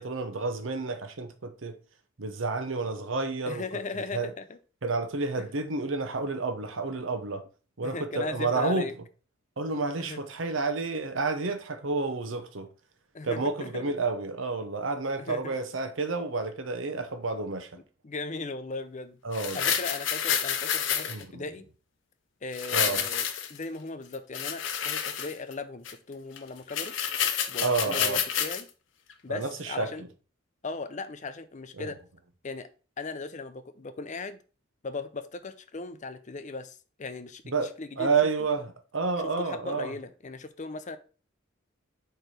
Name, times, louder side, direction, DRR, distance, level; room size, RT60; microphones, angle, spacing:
voice 1, 0.0-1.8 2.2-3.6 4.1-4.3 4.8-7.4 7.8-8.9 9.6-12.7 13.2-17.7 19.2-19.6 21.1-21.4 22.7-23.1 27.6-28.2 29.3-29.9 31.8-31.9 37.5-39.9, right 3 dB, 75° right, 0.9 m, -30 dB
voice 2, 3.5-4.6 7.8-8.9 10.0-10.2 13.1-13.8 15.2-15.6 18.0-19.2 19.5-21.7 22.4-27.0 27.5-28.7 29.2-30.0 30.6-32.0 32.4-32.7 33.0-34.4 34.8-38.1 39.2-41.0, left 3 dB, 40° left, 0.6 m, -38 dB
sound 1, 19.3-21.2 22.5-23.6 24.1-25.5 25.8-25.9 26.4-26.5 26.7-28.6 29.1-29.2, left 8 dB, 70° left, 0.8 m, -29 dB
4.7 x 4.5 x 5.0 m
head